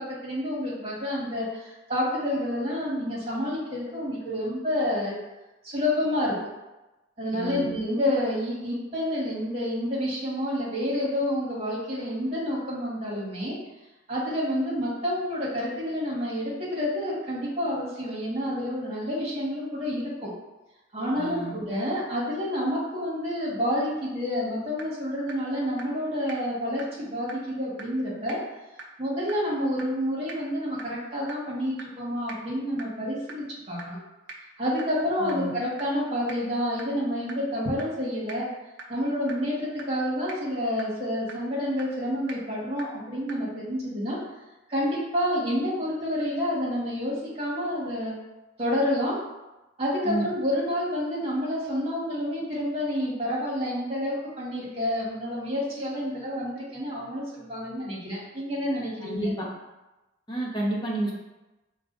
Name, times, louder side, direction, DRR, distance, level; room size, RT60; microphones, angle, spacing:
voice 1, 0.2-5.2 5.6-6.3 7.2-13.6 14.1-20.3 20.9-28.4 29.0-34.0 34.6-38.5 38.9-44.2 44.7-48.1 48.6-49.2 49.8-59.3, equal, 30° right, -5 dB, 1.4 m, -29 dB
voice 2, 7.3-7.7 21.1-21.6 35.2-35.5 50.0-50.2 59.0-59.5 60.3-61.1, right 1 dB, 25° left, -4 dB, 1.0 m, -30 dB
sound 1, 24.8-24.9 25.3-25.4 25.8-25.9 26.3-26.4 26.8-26.9 27.3-27.4 27.8-27.9 28.3-28.4 28.8-28.9 29.3-29.4 29.8-29.9 30.3-30.4 30.8-30.9 31.3-31.4 31.8-31.9 32.3-32.4 32.8-32.9 33.3-33.4 33.8-33.9 34.3-34.4 34.8-34.9 35.3-35.4 35.8-35.9 36.3-36.4 36.8-36.9 37.3-37.4 37.8-37.9 38.3-38.4 38.8-38.9 39.3-39.4 39.8-39.9 40.3-40.4 40.8-40.9 41.3-41.4 41.8-41.9 42.3-42.4 42.8-42.9 43.3-43.4, right 4 dB, 60° right, 0.6 m, -39 dB
4.8 x 2.4 x 3.9 m, 1.0 s
head